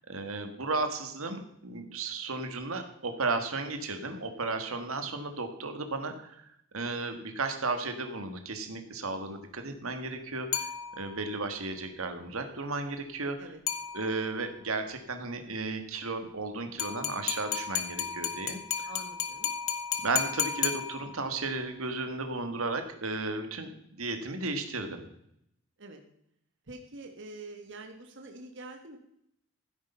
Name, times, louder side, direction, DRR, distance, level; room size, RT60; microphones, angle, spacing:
voice 1, 0.1-6.4 6.7-10.7 11.0-13.5 13.9-18.9 20.0-23.7 24.0-25.0, right 3 dB, 75° right, 6 dB, 1.7 m, -34 dB
sound 1, 10.5-11.4 13.7-14.4 16.8-21.4, left 9 dB, 70° left, 1.4 m, -33 dB
voice 2, 18.8-19.5 25.8-26.0 26.7-29.0, right 2 dB, 55° right, 3 dB, 1.5 m, -45 dB
15.0 x 8.6 x 5.6 m, 0.75 s
head